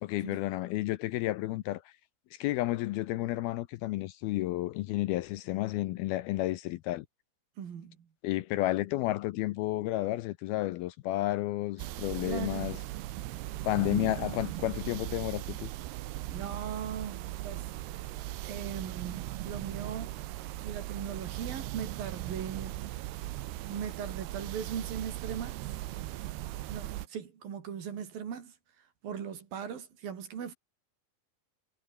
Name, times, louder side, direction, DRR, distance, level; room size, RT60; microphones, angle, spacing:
voice 1, 0.0-1.9 2.3-7.1 8.2-12.8 13.6-15.7, left 16 dB, 75° left, 2.4 m, -31 dB
voice 2, 7.6-8.1 12.2-12.8 16.3-17.7 17.9-18.1 18.4-20.2 20.6-22.8 23.7-25.6 26.7-30.5, right 8 dB, 60° right, 4.4 m, -39 dB
sound 1, 11.8-27.1, right 16 dB, 75° right, 3.0 m, -38 dB
omnidirectional pair, 4.8 m